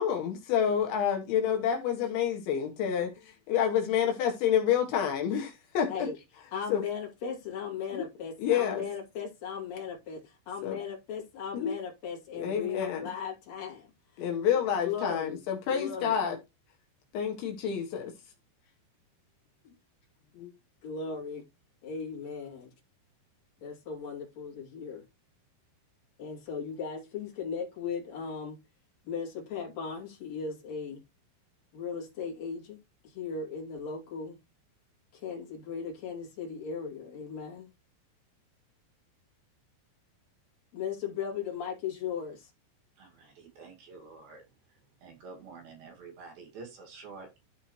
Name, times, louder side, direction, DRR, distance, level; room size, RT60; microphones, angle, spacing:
voice 1, 0.0-6.1 6.7-6.8 7.9-8.1 8.4-8.8 10.6-10.8 11.5-11.7 12.3-13.0 14.2-16.4 17.1-18.1 20.3-20.5, left 8 dB, 75° left, 3.4 m, -28 dB
voice 2, 6.5-15.4 15.7-16.2 19.6-19.7 20.8-21.4 21.8-22.7 23.6-25.0 26.2-28.6 29.0-31.0 31.7-32.8 33.0-34.4 35.1-37.7 40.7-42.5, left 6 dB, 40° left, 3.4 m, -37 dB
voice 3, 43.0-44.4 45.0-47.3, right 4 dB, 55° right, 3.6 m, -48 dB
13.0 x 4.4 x 3.1 m
omnidirectional pair, 5.5 m